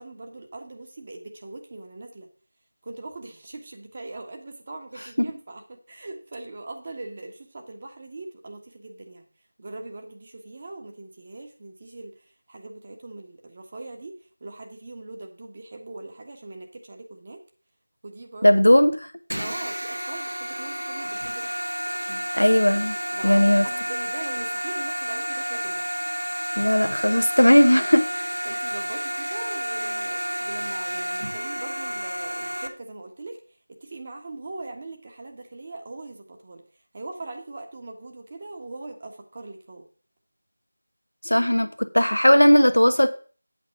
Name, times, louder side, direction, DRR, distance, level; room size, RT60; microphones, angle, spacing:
voice 1, 0.0-2.3 2.8-9.2 9.6-17.4 18.0-18.6 19.4-21.6 23.1-25.9 28.4-33.4 33.7-36.6 36.9-39.9, right 2 dB, 30° right, 3 dB, 1.4 m, -41 dB
voice 2, 18.4-18.9 22.3-23.0 23.2-23.7 26.6-28.1 41.2-43.1, equal, 85° left, 9 dB, 1.1 m, -17 dB
sound 1, 19.3-32.7, equal, 80° right, 1.3 m, -30 dB
8.4 x 6.0 x 5.8 m, 0.39 s
figure-of-eight pair, 170°, 0 cm